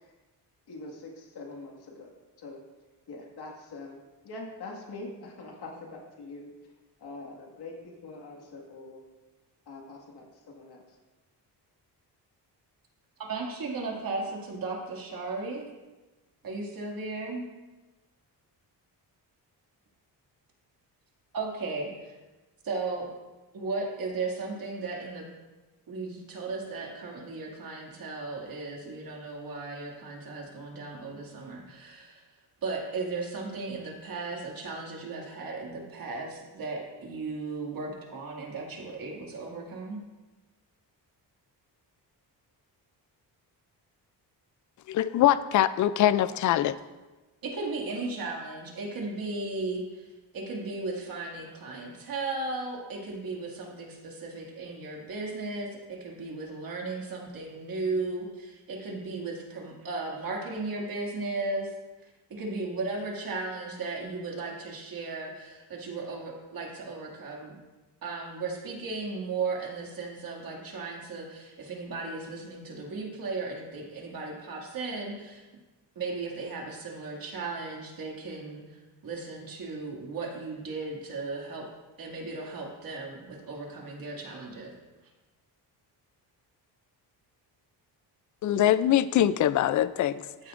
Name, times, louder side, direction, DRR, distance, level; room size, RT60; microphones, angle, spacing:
voice 1, 0.7-2.1 2.4-2.6 3.1-6.5 7.0-9.0 9.7-10.8, left 2 dB, 65° left, -1 dB, 2.0 m, -43 dB
voice 2, 13.3-15.7 16.4-17.5 21.3-22.1 22.6-23.1 23.5-25.3 25.9-32.2 32.6-40.0 47.4-50.1 50.3-61.7 62.0-67.5 68.0-75.5 76.0-81.7 82.0-84.7 90.4-90.5, right 3 dB, 55° right, -1 dB, 2.3 m, -36 dB
voice 3, 44.9-46.8 88.4-90.3, left 12 dB, 45° left, 14 dB, 0.4 m, -23 dB
14.0 x 8.5 x 2.6 m, 1.2 s
cardioid pair, 110°, 41 cm